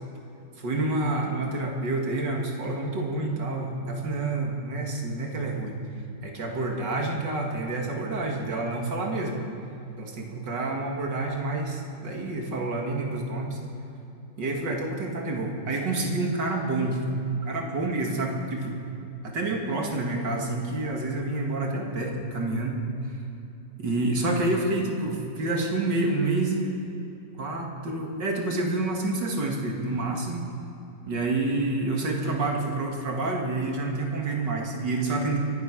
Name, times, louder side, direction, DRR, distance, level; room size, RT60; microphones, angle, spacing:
voice 1, 0.6-5.8 6.2-9.4 10.0-13.6 14.4-17.0 17.3-18.8 19.2-22.8 23.8-26.7 27.4-30.5 31.1-35.4, right 2 dB, 85° right, 0 dB, 2.7 m, -28 dB
24.5 x 9.1 x 6.1 m, 2.9 s
omnidirectional pair, 1.9 m